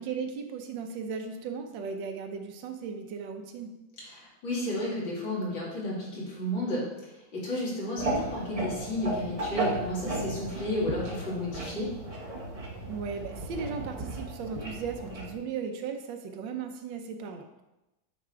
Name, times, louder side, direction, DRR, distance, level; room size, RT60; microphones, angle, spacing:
voice 1, 0.0-3.7 12.9-17.6, right 6 dB, 75° right, 5 dB, 1.5 m, -36 dB
voice 2, 4.0-6.8 7.3-11.9, left 1 dB, 80° left, -6 dB, 3.0 m, -32 dB
sound 1, 8.0-15.3, right 2 dB, 35° right, 0.5 m, -34 dB
9.1 x 3.7 x 4.5 m, 0.99 s
omnidirectional pair, 2.1 m